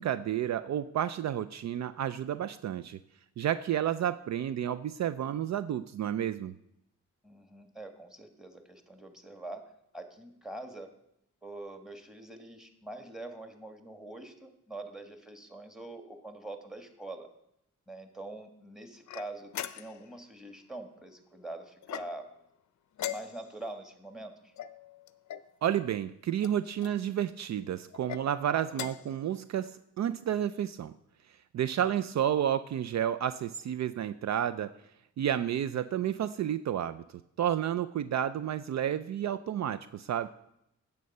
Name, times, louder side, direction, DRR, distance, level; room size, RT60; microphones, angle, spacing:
voice 1, 0.0-3.0 3.4-6.5 25.6-30.9 31.5-34.7 35.2-37.0 37.4-40.3, right 10 dB, 60° right, 13 dB, 0.4 m, -31 dB
voice 2, 7.2-9.6 9.9-10.9 11.4-17.3 17.9-22.2 23.0-24.5 31.8-32.0, right 2 dB, ahead, 6 dB, 1.5 m, -44 dB
sound 1, 19.1-20.1 21.8-22.4 22.9-23.7 24.6-25.5 26.4-27.0 27.9-28.2 28.7-29.2, left 11 dB, 65° left, 0.5 m, -40 dB
9.2 x 6.9 x 5.4 m, 0.79 s
cardioid pair, 60°, 31 cm